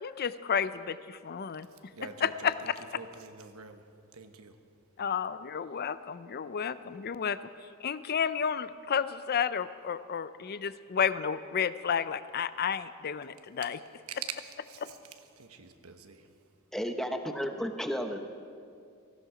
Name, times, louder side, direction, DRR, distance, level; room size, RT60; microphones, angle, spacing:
voice 1, 0.0-1.7 2.2-2.5 5.0-7.4 7.8-13.8 14.8-14.9, left 7 dB, 45° left, 14 dB, 0.5 m, -31 dB
voice 2, 1.7-4.6 14.1-16.3, right 6 dB, 85° right, 7 dB, 1.1 m, -45 dB
voice 3, 16.7-18.2, equal, ahead, 6 dB, 0.9 m, -33 dB
18.0 x 15.5 x 5.0 m, 2.4 s
head